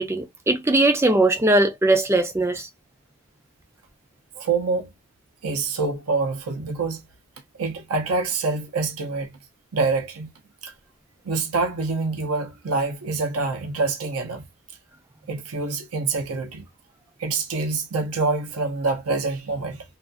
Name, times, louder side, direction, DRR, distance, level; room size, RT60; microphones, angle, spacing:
voice 1, 0.0-2.7, right 2 dB, 10° right, 0.4 m, -20 dB
voice 2, 4.4-4.9 5.4-7.0 7.6-9.3 9.7-10.3 10.6-10.7 11.2-14.5 15.3-16.6 17.2-19.8, right 3 dB, 85° right, 0.6 m, -26 dB
2.4 x 2.4 x 2.4 m
head